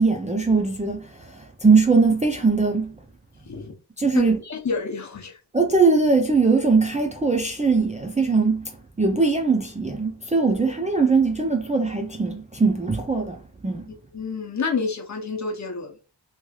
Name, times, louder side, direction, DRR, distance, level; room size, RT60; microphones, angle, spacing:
voice 1, 0.0-3.0 4.0-4.4 5.5-8.7 9.0-13.4 13.6-13.9, right 4 dB, 15° right, 0.4 m, -21 dB
voice 2, 4.1-5.4 13.9-16.0, left 4 dB, 40° left, 0.7 m, -29 dB
3.1 x 3.0 x 2.3 m
wide cardioid pair, 100°, 45 cm